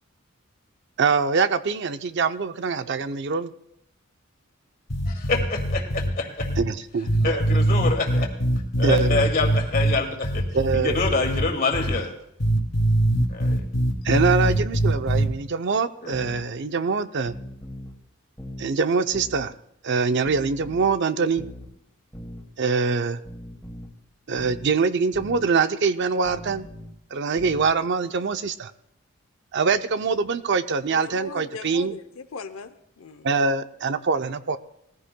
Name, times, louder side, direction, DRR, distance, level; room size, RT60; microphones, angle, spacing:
voice 1, 1.0-3.5 6.6-7.4 8.8-9.2 10.5-11.0 14.0-17.3 18.6-19.6 19.8-21.5 22.6-23.2 24.3-26.7 27.1-28.7 29.5-32.0 33.2-34.6, right 4 dB, 55° right, 10 dB, 0.5 m, -24 dB
sound 1, 4.9-6.1 6.4-6.6 7.1-9.9 10.2-11.4 11.7-11.9 12.4-15.3, right 1 dB, 65° left, 2.5 m, -22 dB
voice 2, 5.1-6.5 7.2-8.3 8.8-10.4 10.7-12.1 13.3-13.6 16.0-16.2, left 3 dB, 45° left, 3 dB, 2.2 m, -26 dB
sound 2, 16.1-16.5 17.2-18.0 18.4-18.7 19.1-19.5 20.2-21.0 21.4-21.7 22.1-22.5 23.3-23.9 24.4-24.7 25.1-25.4 26.2-26.9 27.4-27.7, left 1 dB, 10° left, 2.1 m, -40 dB
voice 3, 30.9-33.3, left 3 dB, 85° left, 8 dB, 0.7 m, -38 dB
20.0 x 14.5 x 2.2 m, 0.80 s
head